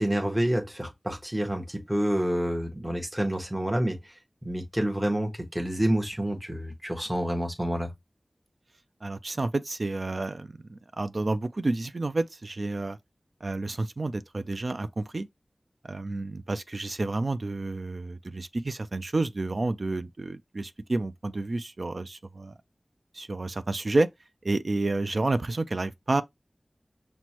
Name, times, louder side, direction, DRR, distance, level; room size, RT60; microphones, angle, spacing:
voice 1, 0.0-4.1 4.4-7.9, right 1 dB, 15° right, 0.9 m, -28 dB
voice 2, 9.0-13.0 13.4-15.3 15.8-22.5 23.1-24.1 24.4-26.2, right 2 dB, 70° right, 0.3 m, -30 dB
6.0 x 2.1 x 2.8 m
wide cardioid pair, 50°, 0 cm